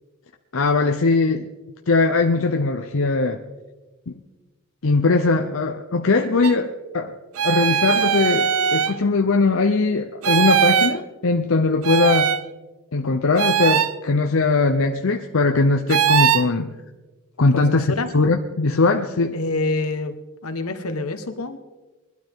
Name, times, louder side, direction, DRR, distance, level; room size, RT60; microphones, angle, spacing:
voice 1, 0.5-1.5 1.9-3.4 4.1-4.2 4.8-7.1 7.4-12.3 12.9-16.7 17.4-19.4, left 3 dB, 65° left, 4 dB, 0.7 m, -20 dB
sound 1, 6.4-6.5 7.4-9.0 10.2-11.0 11.8-12.4 13.4-13.9 15.9-16.5, right 8 dB, 75° right, 0.6 m, -20 dB
voice 2, 17.5-18.1 19.3-20.2 20.4-21.6, left 2 dB, 85° left, 7 dB, 1.3 m, -26 dB
21.5 x 12.5 x 3.6 m, 1.2 s
head